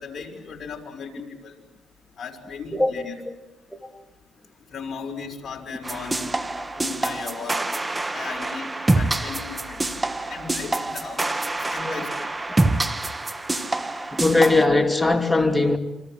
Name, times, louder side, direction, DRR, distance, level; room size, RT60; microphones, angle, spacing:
voice 1, 0.0-1.6 2.2-3.2 4.7-6.3 6.8-7.6 8.1-9.8 10.3-11.3 11.7-12.2, left 5 dB, 45° left, 5.5 m, -36 dB
sound 1, 5.8-14.6, right 2 dB, 20° right, 1.3 m, -26 dB
voice 2, 14.1-15.8, left 2 dB, 5° left, 2.7 m, -19 dB
28.0 x 26.5 x 7.7 m
cardioid pair, 90°, 0 cm